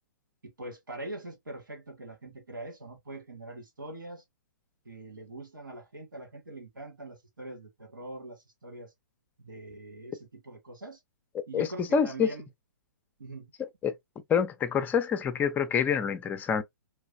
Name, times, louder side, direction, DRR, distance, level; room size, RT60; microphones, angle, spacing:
voice 1, 0.4-4.2 4.9-8.9 9.4-11.0 11.5-12.4 13.2-13.5, right 1 dB, 80° right, 1.9 m, -43 dB
voice 2, 11.9-12.3 13.8-13.9 14.3-16.6, left 7 dB, 15° left, 0.5 m, -26 dB
3.4 x 3.1 x 2.6 m
figure-of-eight pair, 125°, 11 cm